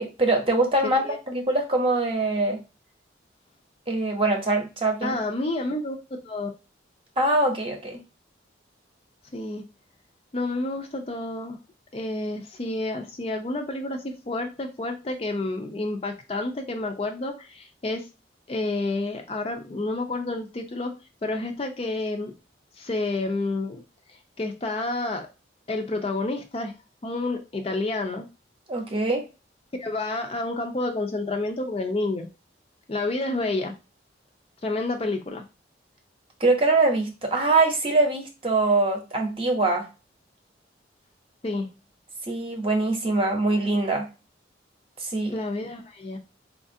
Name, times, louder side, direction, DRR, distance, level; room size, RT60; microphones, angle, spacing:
voice 1, 0.0-2.6 3.9-5.2 7.2-8.0 28.7-29.2 36.4-39.9 42.3-44.1 45.0-45.4, right 2 dB, 30° right, 2 dB, 0.7 m, -23 dB
voice 2, 0.8-1.2 5.0-6.5 9.3-9.6 10.3-11.6 11.9-18.1 18.5-20.9 21.2-22.3 22.8-23.8 24.1-25.3 25.7-26.8 27.0-28.3 29.8-32.3 32.9-33.7 34.6-35.4 41.4-41.7 45.3-46.2, left 2 dB, 30° left, 4 dB, 0.4 m, -29 dB
4.2 x 2.4 x 2.6 m, 0.29 s
head